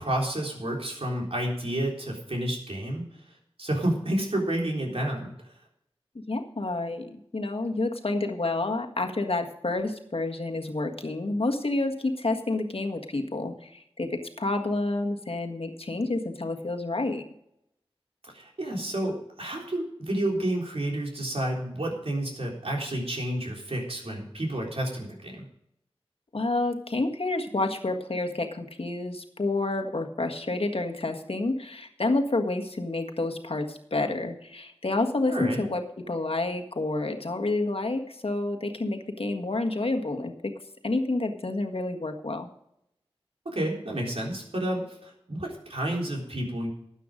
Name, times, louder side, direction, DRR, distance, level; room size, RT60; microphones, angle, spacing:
voice 1, 0.0-3.0 3.6-5.3 18.3-25.5 35.3-35.6 43.5-46.7, right 1 dB, 70° right, -1 dB, 3.7 m, -30 dB
voice 2, 6.3-17.2 26.3-40.5 40.8-42.5, left 2 dB, 70° left, 4 dB, 1.6 m, -29 dB
13.0 x 9.1 x 5.1 m, 0.77 s
wide cardioid pair, 50°, 10 cm